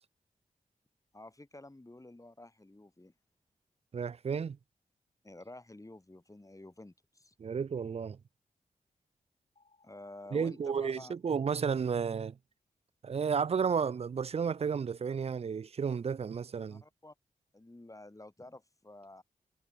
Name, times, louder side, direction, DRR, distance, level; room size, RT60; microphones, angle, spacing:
voice 1, 1.1-3.1 5.2-7.3 9.8-11.1 16.7-17.1 17.5-19.2, left 2 dB, 20° left, 2.7 m, -50 dB
voice 2, 3.9-4.6 7.4-8.2 10.3-12.4 13.0-16.8, right 6 dB, 45° right, 0.4 m, -32 dB
sound 1, 9.6-12.0, left 3 dB, 45° left, 5.6 m, -72 dB
cardioid pair, 45°, 15 cm